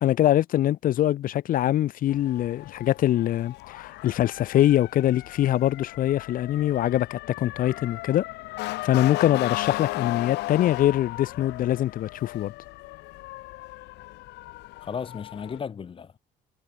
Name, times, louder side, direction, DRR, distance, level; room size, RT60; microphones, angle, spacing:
voice 1, 0.0-8.2 8.6-12.5, left 12 dB, 55° left, 0.6 m, -23 dB
Motor vehicle (road) / Siren, 2.1-15.6, left 20 dB, 85° left, 1.0 m, -36 dB
voice 2, 14.8-16.2, left 6 dB, 30° left, 0.9 m, -35 dB
cardioid pair, 110°, 17 cm